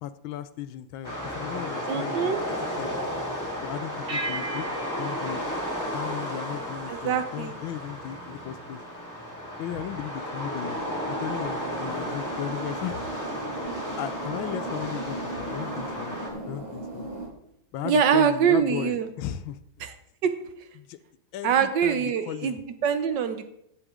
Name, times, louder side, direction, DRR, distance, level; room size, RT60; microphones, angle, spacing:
voice 1, 0.0-2.4 2.8-2.9 3.6-4.7 5.0-5.4 5.9-8.8 9.6-10.8 11.1-13.1 14.0-16.2 16.5-17.1 17.7-19.6 20.8-21.0 21.3-22.6, left 11 dB, 80° left, 14 dB, 1.4 m, -36 dB
sound 1, 1.0-16.3, equal, 10° left, 2.3 m, -33 dB
voice 2, 1.9-2.4 6.9-7.5 13.7-13.8 17.8-19.1 19.8-19.9 20.2-20.3 21.4-23.4, right 7 dB, 65° right, 10 dB, 1.4 m, -24 dB
sound 2, 4.1-6.8, right 2 dB, 35° right, 1.4 m, -37 dB
sound 3, 10.6-17.3, right 2 dB, 85° right, 3.8 m, -37 dB
15.0 x 8.1 x 3.7 m, 0.74 s
omnidirectional pair, 2.2 m